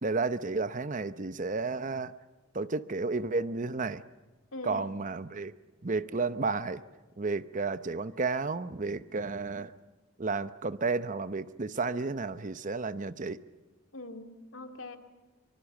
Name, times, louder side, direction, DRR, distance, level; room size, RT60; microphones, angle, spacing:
voice 1, 0.0-2.1 2.5-4.0 4.6-5.5 5.8-6.8 7.2-9.7 10.2-13.4, right 3 dB, 40° right, 13 dB, 0.8 m, -32 dB
voice 2, 4.5-5.0 13.9-15.0, left 2 dB, 90° left, 5 dB, 2.2 m, -42 dB
25.0 x 24.5 x 7.3 m, 1.2 s
head